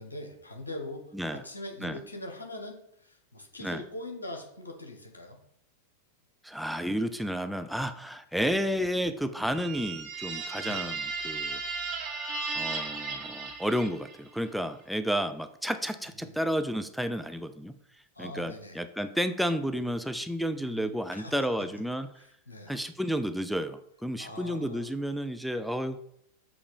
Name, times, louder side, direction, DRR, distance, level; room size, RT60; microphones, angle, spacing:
voice 1, 0.0-5.4 10.6-10.9 16.1-16.4 18.1-18.8 20.6-21.4 22.2-22.8 24.2-24.9, left 1 dB, 80° left, 2 dB, 1.4 m, -42 dB
voice 2, 6.4-11.6 12.5-17.7 18.2-22.1 22.7-26.0, equal, ahead, 8 dB, 0.4 m, -31 dB
sound 1, 9.5-14.3, right 4 dB, 35° right, 1.6 m, -35 dB
7.0 x 3.3 x 5.2 m, 0.73 s
figure-of-eight pair, 90°, 0 cm